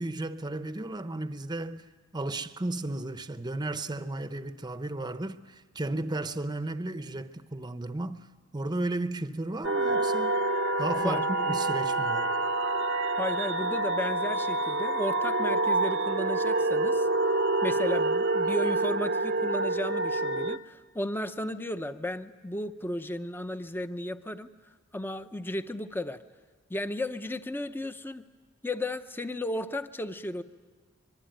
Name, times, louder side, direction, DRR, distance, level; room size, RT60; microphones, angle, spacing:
voice 1, 0.0-8.2 8.5-10.4 10.8-12.3, right 2 dB, 20° right, 0.8 m, -34 dB
sound 1, 9.6-20.6, right 2 dB, 60° right, 0.8 m, -27 dB
voice 2, 13.2-17.1 17.6-24.5 24.9-26.2 26.7-28.3 28.6-30.4, left 1 dB, 10° left, 0.7 m, -34 dB
24.5 x 23.0 x 9.1 m
head